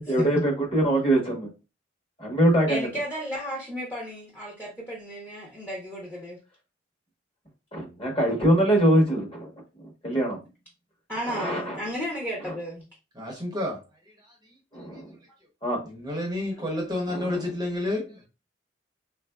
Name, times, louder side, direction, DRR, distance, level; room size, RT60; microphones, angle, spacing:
voice 1, 0.0-1.5 2.2-2.9 7.7-9.5 9.8-10.4 11.3-11.8 12.4-12.5 14.7-15.1 15.6-15.8 17.1-17.4, right 1 dB, 30° left, 1.0 m, -23 dB
voice 2, 2.7-6.4 11.1-12.8, equal, 10° left, 0.7 m, -33 dB
voice 3, 13.1-13.8 14.2-14.3 15.8-18.3, left 1 dB, 20° right, 0.7 m, -30 dB
3.7 x 2.5 x 2.2 m
head